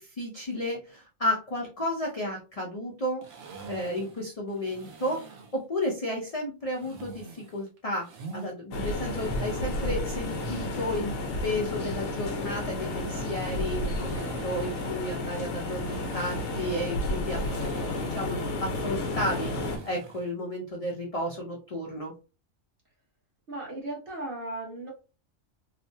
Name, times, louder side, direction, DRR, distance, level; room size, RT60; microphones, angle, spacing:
voice 1, 0.0-3.2 3.7-11.1 11.4-17.4 18.0-22.1, left 1 dB, 45° left, -1 dB, 0.5 m, -33 dB
sound 1, 3.2-5.6 6.7-8.5 9.0-11.0 12.4-20.3, right 3 dB, 65° right, 1.0 m, -45 dB
sound 2, 8.7-19.8, left 2 dB, 65° left, 0.9 m, -32 dB
voice 2, 23.5-24.9, right 2 dB, 45° right, -1 dB, 1.2 m, -36 dB
3.0 x 2.1 x 2.6 m, 0.32 s
omnidirectional pair, 1.3 m